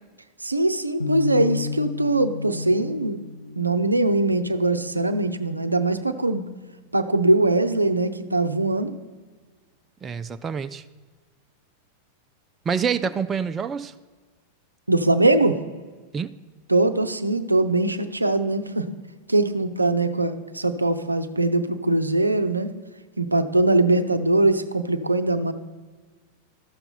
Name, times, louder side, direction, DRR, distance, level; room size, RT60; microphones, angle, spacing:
voice 1, 0.4-3.2 3.6-6.5 6.9-8.9 14.9-15.6 16.7-18.9 19.3-22.7 23.2-25.5, right 2 dB, 85° right, 9 dB, 0.5 m, -21 dB
sound 1, 1.0-7.1, left 5 dB, 85° left, 0.9 m, -34 dB
voice 2, 10.0-10.8 12.7-13.9 16.1-16.3, right 6 dB, 20° right, 11 dB, 0.3 m, -27 dB
13.0 x 6.6 x 4.3 m, 1.4 s
figure-of-eight pair, 90°, 0 cm